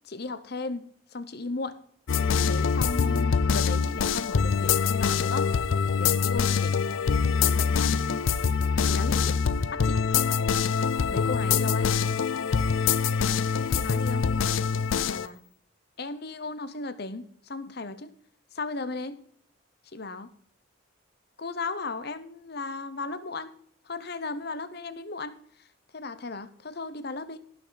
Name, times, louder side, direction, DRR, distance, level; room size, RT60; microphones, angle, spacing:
voice 1, 0.0-0.9 1.1-1.8 2.4-5.5 5.9-6.8 7.5-8.2 8.8-10.0 11.1-11.9 13.6-14.3 15.0-15.4 16.0-18.1 18.5-19.2 19.9-20.3 21.4-23.5 23.9-25.4 25.9-27.4, left 3 dB, 50° left, 13 dB, 0.9 m, -36 dB
sound 1, 2.1-15.3, left 6 dB, 75° left, 0.5 m, -24 dB
17.0 x 6.1 x 4.0 m, 0.64 s
head